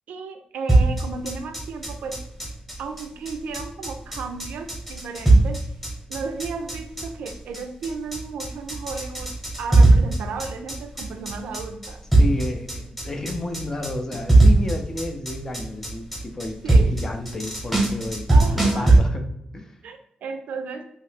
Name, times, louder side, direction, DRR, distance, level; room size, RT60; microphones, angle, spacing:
voice 1, 0.1-2.2 2.8-5.6 6.1-12.0 16.6-17.0 18.3-19.0 19.8-20.8, right 4 dB, 85° right, 7 dB, 0.4 m, -34 dB
sound 1, 0.7-19.0, right 2 dB, ahead, 0.8 m, -19 dB
voice 2, 12.2-19.3 19.5-19.8, left 2 dB, 20° left, 5 dB, 0.3 m, -31 dB
3.1 x 2.7 x 3.2 m, 0.79 s
wide cardioid pair, 180°, 2 cm